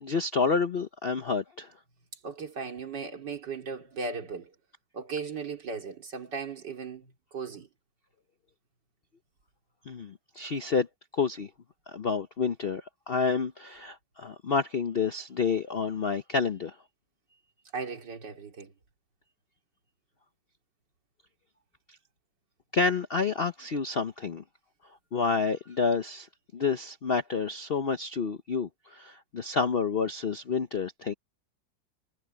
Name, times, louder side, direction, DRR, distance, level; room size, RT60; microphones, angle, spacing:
voice 1, 0.0-1.7 9.9-10.9 11.1-11.5 11.9-16.7 22.7-24.4 25.1-26.3 26.5-31.1, left 5 dB, 50° left, 0.7 m, -29 dB
voice 2, 2.2-4.5 4.9-7.7 17.7-18.7, right 4 dB, 70° right, 3.3 m, -37 dB
omnidirectional pair, 2.0 m